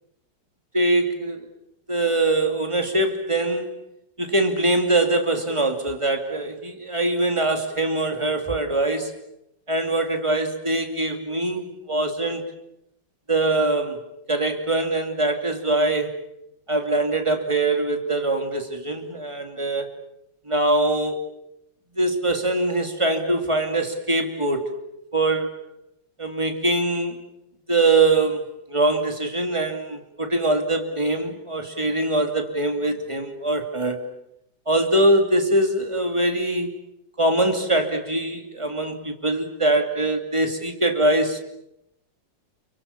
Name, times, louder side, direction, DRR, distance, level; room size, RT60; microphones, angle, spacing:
voice 1, 0.7-1.4 1.9-3.8 4.2-9.1 9.7-12.5 13.3-14.0 14.3-16.1 16.7-19.9 20.5-21.2 22.0-24.7 25.1-25.7 26.2-27.2 27.7-34.0 34.7-36.8 37.2-41.4, right 2 dB, 15° right, 5 dB, 2.7 m, -23 dB
30.0 x 24.0 x 7.2 m, 0.82 s
omnidirectional pair, 2.0 m